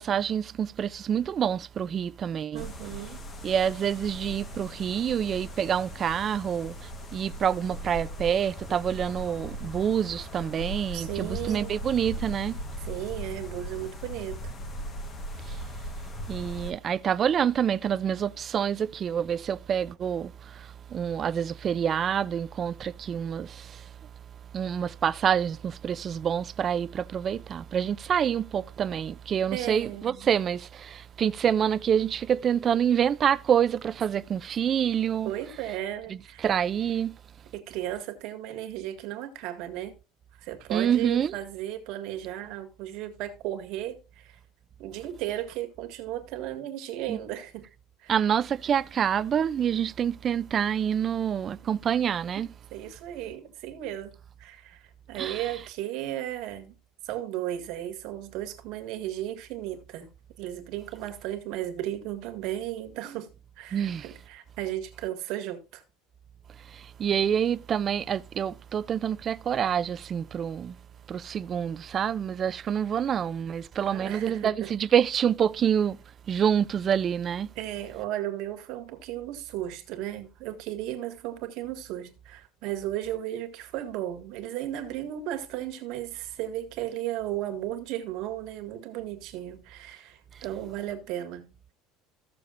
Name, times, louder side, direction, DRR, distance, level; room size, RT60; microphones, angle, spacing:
voice 1, 0.0-2.7 3.4-12.6 15.5-15.6 16.3-23.9 24.5-35.3 36.1-37.2 40.7-41.4 47.1-47.2 48.1-52.5 55.2-55.5 63.7-64.0 66.7-70.8 71.1-76.0 76.3-77.5, right 8 dB, 25° right, 0.4 m, -27 dB
voice 2, 2.5-3.2 10.9-11.8 12.8-14.4 29.5-30.3 35.2-36.5 37.5-39.9 40.4-44.4 44.8-47.7 48.0-48.1 52.4-54.1 54.4-56.7 57.0-60.1 60.4-63.3 63.6-65.8 73.9-74.7 77.6-91.5, right 12 dB, 55° right, 1.7 m, -35 dB
sound 1, 2.6-16.7, equal, 25° left, 1.2 m, -39 dB
15.5 x 6.8 x 2.5 m
cardioid pair, 165°, 0 cm